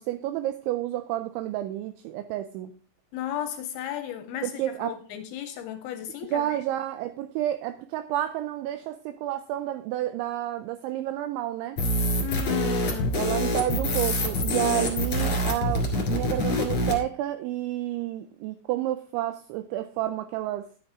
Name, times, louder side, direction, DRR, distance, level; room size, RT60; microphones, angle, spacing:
voice 1, 0.0-2.7 4.4-4.9 6.3-11.8 13.2-20.7, right 13 dB, 85° right, 2.6 m, -30 dB
voice 2, 3.1-6.6 12.2-13.2, left 10 dB, 80° left, 2.9 m, -34 dB
sound 1, 11.8-17.0, left 1 dB, 45° left, 2.0 m, -26 dB
11.0 x 9.2 x 3.6 m
omnidirectional pair, 5.9 m